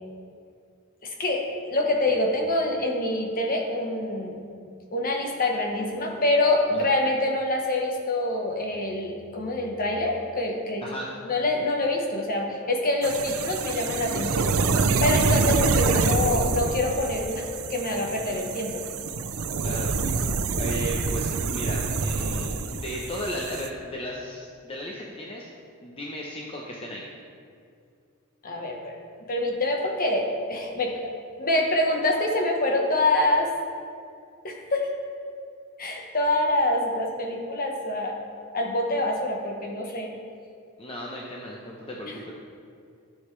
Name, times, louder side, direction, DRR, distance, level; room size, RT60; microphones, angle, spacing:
voice 1, 1.0-4.4 4.9-10.9 11.2-18.8 28.4-29.0 29.3-31.1 31.4-33.5 34.4-34.9 35.8-38.2 38.5-40.1 42.0-42.1, left 2 dB, 45° left, 1 dB, 1.2 m, -26 dB
voice 2, 10.8-11.1 18.2-18.4 19.6-19.9 20.6-25.5 25.8-27.0 40.8-42.3, equal, 25° left, -3 dB, 0.8 m, -35 dB
Machine Whooshes Flames Flyby, 13.0-23.7, right 4 dB, 85° right, 0.6 m, -26 dB
13.0 x 7.1 x 3.3 m, 2.3 s
head